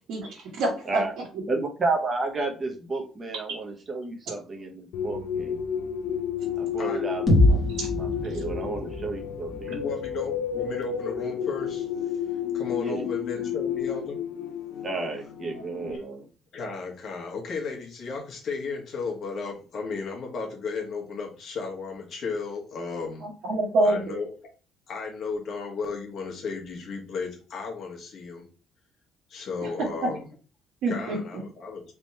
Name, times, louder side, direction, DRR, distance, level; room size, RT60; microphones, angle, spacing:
voice 1, 0.1-1.0 7.7-7.9 23.2-24.1 30.8-31.2, right 2 dB, 60° right, -7 dB, 1.5 m, -26 dB
voice 2, 1.5-5.6 6.6-7.6 7.9-9.9 12.7-13.1 13.4-13.6 14.8-16.3, right 3 dB, 20° right, 1 dB, 0.9 m, -32 dB
sound 1, 4.9-16.0, left 8 dB, 75° left, 0.7 m, -31 dB
sound 2, 7.3-11.2, left 1 dB, 20° left, 1.0 m, -26 dB
voice 3, 9.7-11.9 12.5-14.2 15.5-15.6 16.5-23.3 23.8-24.3 24.9-28.5 29.3-30.3 30.9-31.8, left 4 dB, 40° left, 0 dB, 1.2 m, -34 dB
3.5 x 2.9 x 4.2 m, 0.35 s
cardioid pair, 175°, 0 cm